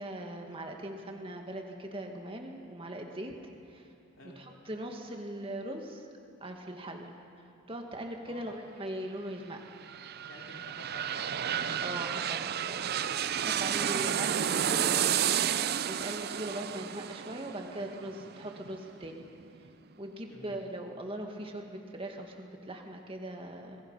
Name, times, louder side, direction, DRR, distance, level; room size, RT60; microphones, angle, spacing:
voice 1, 0.0-3.3 3.7-3.9 4.4-6.1 6.4-7.1 7.7-9.6 11.8-12.9 13.4-15.1 15.8-19.3 20.0-23.8, right 1 dB, 25° right, 2 dB, 2.1 m, -40 dB
voice 2, 8.3-8.6 10.3-11.3 13.2-14.2 20.3-20.6, left 1 dB, 65° left, -2 dB, 3.3 m, -51 dB
sound 1, 9.6-19.3 19.7-19.8, right 9 dB, 45° right, 0.5 m, -31 dB
27.0 x 21.5 x 5.7 m, 2.5 s
head